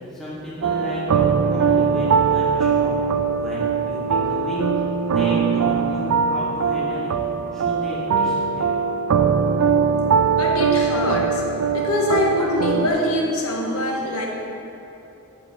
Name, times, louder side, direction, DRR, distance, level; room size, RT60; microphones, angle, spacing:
voice 1, 0.1-3.0 3.3-4.6 5.0-7.2 7.5-8.8, left 1 dB, ahead, -8 dB, 1.8 m, -33 dB
sound 1, 0.6-12.9, right 6 dB, 80° right, 0.4 m, -21 dB
voice 2, 10.3-11.4 11.7-14.3, left 1 dB, 75° left, -1 dB, 1.2 m, -23 dB
8.3 x 5.0 x 6.8 m, 3.0 s
head